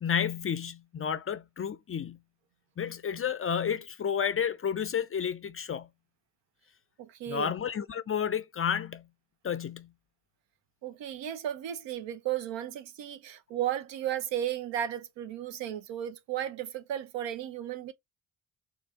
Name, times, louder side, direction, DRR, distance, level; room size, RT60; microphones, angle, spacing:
voice 1, 0.0-2.2 2.8-5.9 7.3-9.1 9.4-9.9, left 8 dB, 30° left, 0.4 m, -31 dB
voice 2, 7.0-7.5 10.8-17.9, right 11 dB, 65° right, 0.7 m, -34 dB
4.4 x 2.0 x 3.5 m
hypercardioid pair, 45°, 47 cm